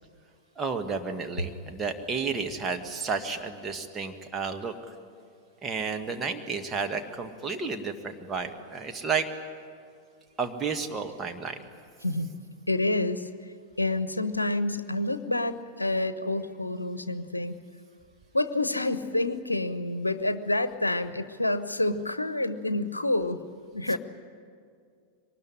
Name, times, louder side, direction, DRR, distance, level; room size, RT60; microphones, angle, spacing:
voice 1, 0.5-4.7 5.6-9.3 10.4-11.6 23.9-24.0, right 5 dB, 20° right, 4 dB, 1.6 m, -32 dB
voice 2, 12.7-13.3 13.8-17.6 18.3-23.4 23.7-24.0, left 2 dB, 85° left, 12 dB, 0.9 m, -28 dB
23.5 x 20.0 x 9.9 m, 2.2 s
figure-of-eight pair, 90°, 0 cm